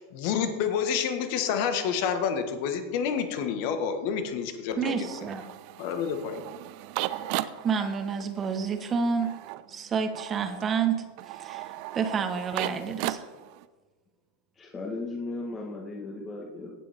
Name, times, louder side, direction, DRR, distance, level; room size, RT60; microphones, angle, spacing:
voice 1, 0.0-5.1 5.8-6.4, left 7 dB, 60° left, 8 dB, 1.5 m, -29 dB
voice 2, 4.8-5.4 7.6-9.3 9.7-13.3, right 6 dB, 30° right, 7 dB, 1.2 m, -29 dB
sound 1, 4.8-13.7, right 15 dB, 55° right, 0.5 m, -37 dB
voice 3, 14.5-16.7, left 2 dB, 25° left, 0 dB, 1.7 m, -36 dB
17.0 x 7.5 x 3.7 m, 1.3 s
hypercardioid pair, 90°, 0 cm